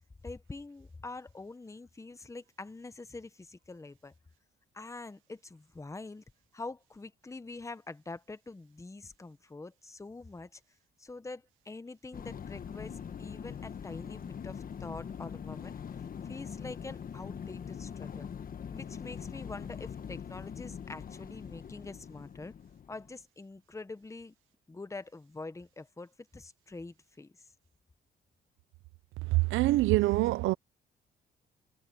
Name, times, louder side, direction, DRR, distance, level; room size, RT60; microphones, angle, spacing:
voice 1, 0.2-4.1 4.7-6.2 6.5-10.6 11.0-15.7 16.2-18.3 18.7-22.5 22.9-24.3 24.7-27.5, left 3 dB, 15° left, 1.1 m, -45 dB
sound 1, 12.1-23.1, left 7 dB, 45° left, 1.2 m, -42 dB
voice 2, 29.2-30.5, right 18 dB, 90° right, 0.6 m, -25 dB
cardioid pair, 90°, 20 cm